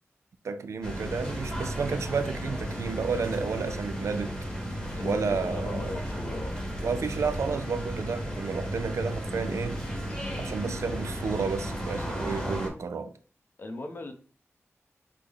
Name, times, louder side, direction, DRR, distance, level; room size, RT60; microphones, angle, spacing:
voice 1, 0.4-4.3 5.0-5.9 6.8-9.8 10.4-13.1, right 5 dB, 75° right, 0.3 m, -31 dB
sound 1, 0.8-12.7, equal, 15° left, 1.0 m, -34 dB
voice 2, 5.0-6.5 10.2-10.5 13.6-14.1, left 2 dB, 45° left, 0.6 m, -37 dB
3.4 x 2.0 x 3.6 m
wide cardioid pair, 80°, 5 cm